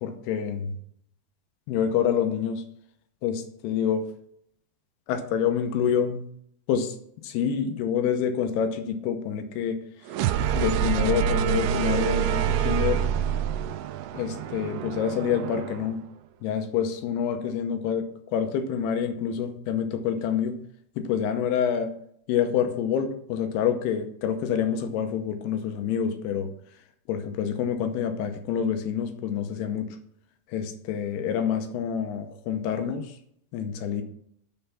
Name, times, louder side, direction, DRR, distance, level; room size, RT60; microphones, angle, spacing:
voice 1, 0.0-0.7 1.7-2.6 3.2-4.1 5.1-6.2 6.7-7.0 7.2-9.8 10.5-13.1 14.1-16.0 16.4-20.6 21.0-21.9 22.3-26.5 27.1-29.9 30.5-33.2 33.5-34.0, left 8 dB, 80° left, 7 dB, 2.6 m, -27 dB
sound 1, 10.1-15.9, right 9 dB, 80° right, 2.4 m, -26 dB
6.9 x 5.5 x 5.7 m, 0.68 s
omnidirectional pair, 4.9 m